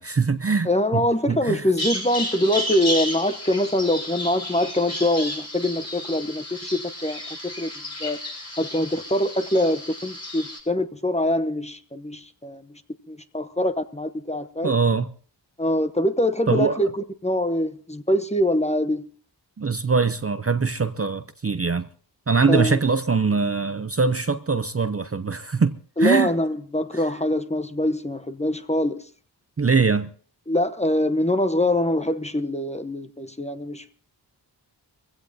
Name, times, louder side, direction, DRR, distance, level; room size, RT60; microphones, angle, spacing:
voice 1, 0.0-1.7 14.6-15.1 16.5-16.8 19.6-21.9 22.3-26.3 26.9-27.1 29.6-30.1, right 4 dB, 35° right, 0.6 m, -22 dB
voice 2, 0.6-7.7 8.0-8.2 8.6-12.8 13.1-14.7 15.6-16.9 17.2-19.0 22.5-22.8 26.0-29.0 30.5-33.9, left 1 dB, 15° left, 0.9 m, -24 dB
Bird vocalization bird call bird song, 1.8-10.6, left 1 dB, 35° left, 6.5 m, -32 dB
23.0 x 16.0 x 2.7 m
wide cardioid pair, 75°, 43 cm